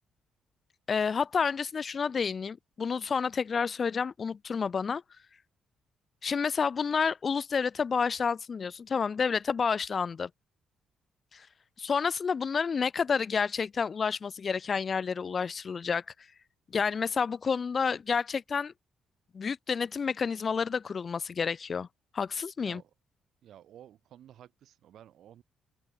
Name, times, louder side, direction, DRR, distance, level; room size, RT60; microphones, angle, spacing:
voice 1, 0.9-5.0 6.2-10.3 11.3-11.5 11.8-16.0 16.7-18.7 19.3-21.9 22.1-22.8, left 6 dB, 40° left, 0.5 m, -29 dB
voice 2, 22.6-22.9 23.4-25.4, right 11 dB, 70° right, 6.4 m, -53 dB
cardioid pair, 90°, 0 cm